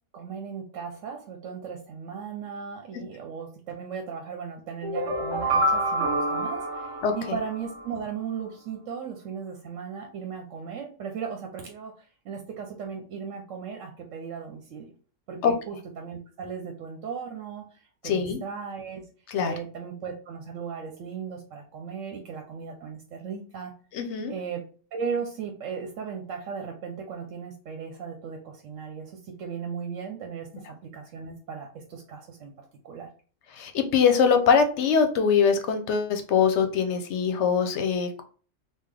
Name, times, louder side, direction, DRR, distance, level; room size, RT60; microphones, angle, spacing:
voice 1, 0.1-14.9 15.3-19.0 19.4-23.7 24.3-24.6 24.9-32.5 32.8-33.1, right 6 dB, 80° right, 4 dB, 1.0 m, -37 dB
sound 1, 4.8-7.9, right 1 dB, 25° right, 1.1 m, -27 dB
voice 2, 7.0-7.4 15.4-15.5 18.0-18.4 19.3-19.5 23.9-24.3 33.5-38.2, left 6 dB, 70° left, 6 dB, 0.8 m, -23 dB
3.7 x 2.3 x 3.3 m, 0.40 s
omnidirectional pair, 1.3 m